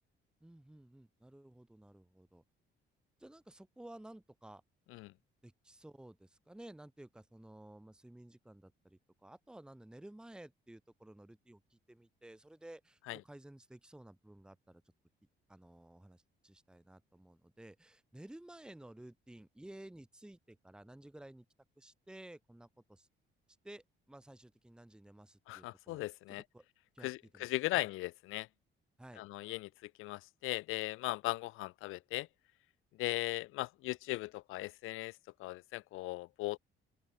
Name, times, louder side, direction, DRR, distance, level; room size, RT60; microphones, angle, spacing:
voice 1, 0.4-2.4 3.2-4.6 5.4-14.8 15.5-21.5 21.8-23.1 23.6-26.0 26.3-26.6 26.9-27.5 29.0-29.2, right 1 dB, 5° right, 1.8 m, -54 dB
voice 2, 25.5-26.4 27.0-28.5 29.2-32.3 33.0-35.1 35.4-36.6, left 19 dB, 90° left, 0.5 m, -38 dB
open air
cardioid pair, 175°, 20 cm